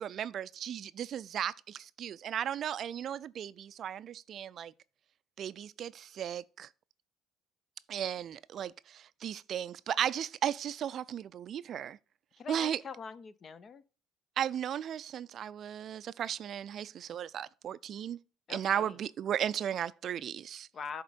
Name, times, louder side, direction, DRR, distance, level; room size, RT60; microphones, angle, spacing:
voice 1, 0.0-4.7 5.4-6.7 7.9-12.0 12.5-12.8 14.4-18.2 18.5-20.7, right 9 dB, 55° right, 0.3 m, -35 dB
voice 2, 12.4-13.8 18.5-19.0 20.7-21.0, left 5 dB, 45° left, 0.6 m, -43 dB
8.9 x 3.6 x 5.1 m
supercardioid pair, 75°, 0 cm